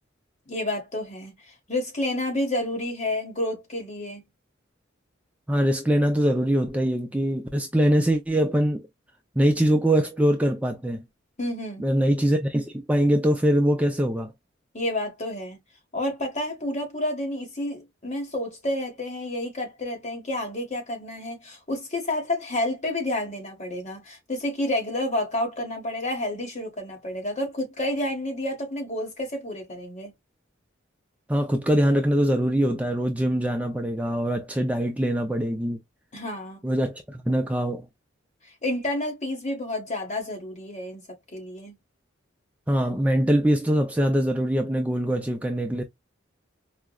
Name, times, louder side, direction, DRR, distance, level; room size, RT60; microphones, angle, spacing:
voice 1, 0.5-4.2 11.4-11.8 14.7-15.6 15.9-30.1 36.1-36.6 38.6-41.0 41.3-41.7, left 1 dB, 40° left, 1.3 m, -30 dB
voice 2, 5.5-8.9 9.4-11.0 11.8-14.3 31.3-35.8 36.6-37.9 42.7-45.8, equal, 5° right, 0.4 m, -23 dB
4.7 x 2.0 x 2.2 m
head